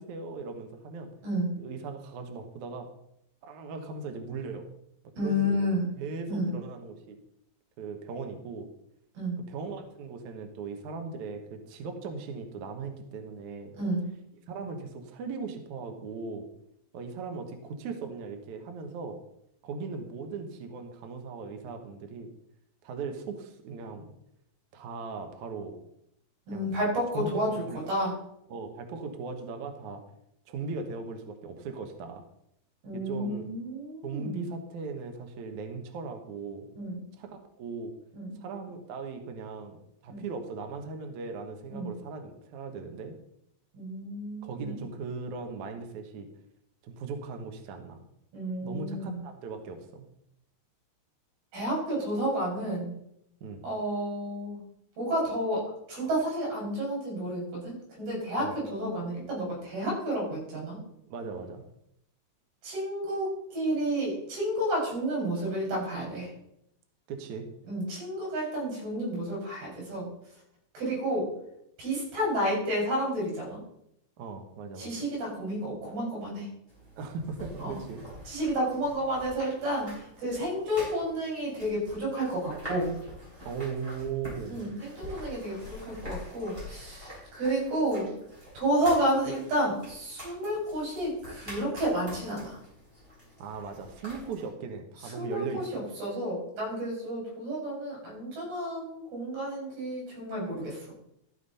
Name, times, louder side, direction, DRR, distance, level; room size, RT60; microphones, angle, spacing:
voice 1, 0.0-1.1 1.5-2.9 3.4-4.7 5.2-7.2 7.8-8.7 9.5-13.7 14.5-16.5 16.9-19.2 19.6-22.3 22.8-24.1 24.7-25.7 26.5-26.7 27.1-27.8 28.5-30.0 30.5-32.2 32.9-33.5 34.0-36.7 37.2-37.9 38.4-39.8 40.0-43.1 44.4-46.3 46.8-48.0 48.6-50.0 53.4-53.6 58.4-58.5 61.1-61.6 67.1-67.4 74.2-74.9 77.0-78.0 83.4-84.6 93.4-95.8, right 4 dB, 85° right, 5 dB, 1.7 m, -38 dB
voice 2, 5.2-5.9 6.3-6.5 9.2-9.4 13.7-14.0 26.5-28.2 32.8-34.6 36.7-37.1 38.1-38.4 40.1-40.2 41.7-41.9 43.7-44.8 48.3-49.2 51.5-52.9 53.6-54.6 55.0-60.8 62.6-66.3 67.7-70.1 70.7-71.3 71.8-73.6 74.8-76.5 77.6-77.8 78.3-82.9 84.5-88.1 88.6-92.6 95.0-100.8, equal, 55° right, -3 dB, 7.1 m, -31 dB
sound 1, 76.7-94.5, equal, 10° right, 4.5 m, -46 dB
13.0 x 7.3 x 4.1 m, 0.76 s
omnidirectional pair, 5.3 m